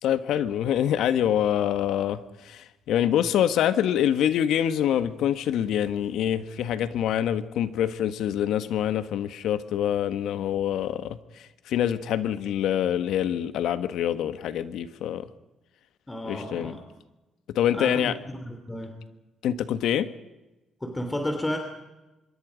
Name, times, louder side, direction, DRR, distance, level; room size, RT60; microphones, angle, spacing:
voice 1, 0.0-15.3 16.2-16.7 17.5-18.2 19.4-20.1, left 10 dB, 80° left, 12 dB, 1.3 m, -25 dB
voice 2, 16.1-16.8 17.7-19.0 20.8-21.6, left 1 dB, 15° left, 5 dB, 3.0 m, -32 dB
25.5 x 23.0 x 5.2 m, 1.0 s
cardioid pair, 90°, 0 cm